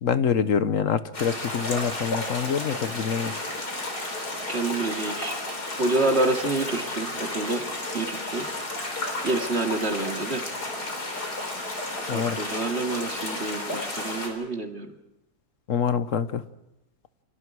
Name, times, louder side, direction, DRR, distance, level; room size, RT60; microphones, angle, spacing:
voice 1, 0.0-3.3 12.1-12.4 15.7-16.4, left 7 dB, 55° left, 12 dB, 1.3 m, -25 dB
sound 1, 1.1-14.3, left 2 dB, 80° left, 5.2 m, -32 dB
voice 2, 4.5-5.3 5.8-7.7 7.9-8.5 9.2-10.4 12.1-14.9, right 2 dB, 40° right, 3 dB, 2.6 m, -27 dB
30.0 x 26.5 x 4.8 m, 0.90 s
omnidirectional pair, 1.7 m